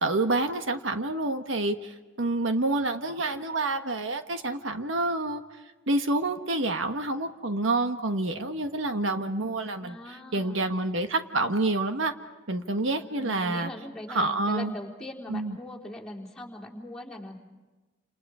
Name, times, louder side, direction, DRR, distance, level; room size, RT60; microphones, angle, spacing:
voice 1, 0.0-5.4 5.9-10.0 10.3-12.1 12.5-13.7 14.1-14.7 15.3-15.6, right 2 dB, 75° right, 7 dB, 1.4 m, -28 dB
voice 2, 9.8-10.7 13.0-17.4, left 1 dB, 5° left, -4 dB, 3.9 m, -40 dB
29.5 x 28.0 x 5.0 m, 1.2 s
head